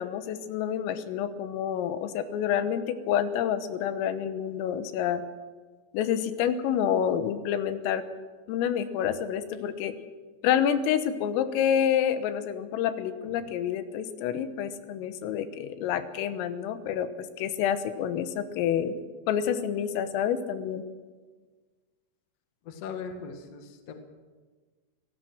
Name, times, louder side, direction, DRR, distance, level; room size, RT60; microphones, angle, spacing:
voice 1, 0.0-5.2 5.9-8.0 8.5-9.9 10.4-19.0 19.3-20.8, left 9 dB, 85° left, 10 dB, 3.8 m, -28 dB
voice 2, 22.6-23.9, left 5 dB, 60° left, 6 dB, 1.6 m, -39 dB
24.5 x 18.0 x 6.2 m, 1.4 s
omnidirectional pair, 5.9 m